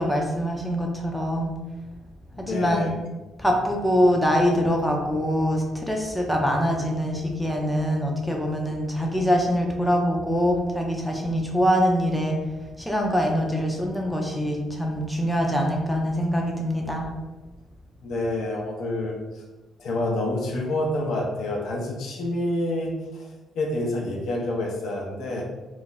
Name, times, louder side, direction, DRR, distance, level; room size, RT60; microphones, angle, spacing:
voice 1, 0.0-1.5 2.4-3.0 3.4-12.4 12.8-17.1, equal, ahead, 0 dB, 0.5 m, -24 dB
voice 2, 2.3-2.9 18.0-19.4 19.8-23.3 23.5-25.4, left 1 dB, 75° left, -1 dB, 0.6 m, -28 dB
2.4 x 2.1 x 3.9 m, 1.1 s
cardioid pair, 90°, 0 cm